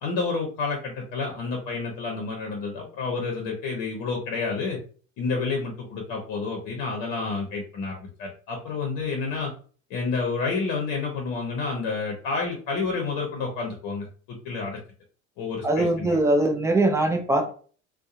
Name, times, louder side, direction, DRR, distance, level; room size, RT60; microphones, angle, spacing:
voice 1, 0.0-4.8 5.2-9.5 9.9-14.8 15.4-16.2, left 4 dB, 55° left, 1 dB, 0.8 m, -29 dB
voice 2, 15.6-17.5, right 2 dB, 5° right, 4 dB, 0.5 m, -22 dB
2.6 x 2.3 x 2.4 m, 0.41 s
hypercardioid pair, 70°, 40 cm